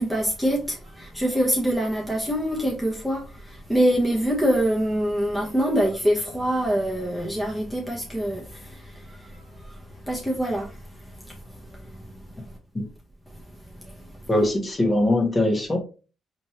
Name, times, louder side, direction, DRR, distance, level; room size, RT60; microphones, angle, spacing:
voice 1, 0.0-12.6 13.3-14.2, equal, ahead, 1.0 m, -26 dB
voice 2, 14.3-15.8, left 1 dB, 25° left, 1.3 m, -21 dB
4.3 x 3.0 x 2.9 m
cardioid pair, 90°, 0 cm